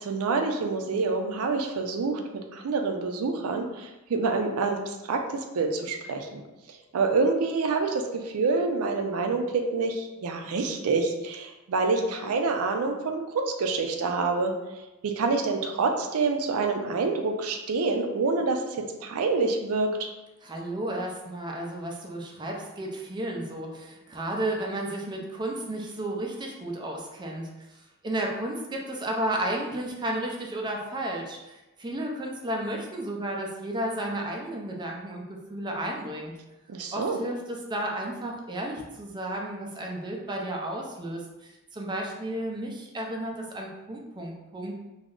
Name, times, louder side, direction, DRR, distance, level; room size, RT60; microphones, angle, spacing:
voice 1, 0.0-2.2 2.5-3.7 4.1-4.8 5.1-5.2 5.5-6.4 6.9-8.0 8.3-14.5 15.0-18.6 19.0-20.1 36.7-37.2, right 4 dB, 90° right, 3 dB, 0.4 m, -26 dB
voice 2, 20.4-27.5 28.0-36.3 36.9-44.7, right 1 dB, 20° right, 0 dB, 0.4 m, -33 dB
2.3 x 2.0 x 3.6 m, 1.0 s
head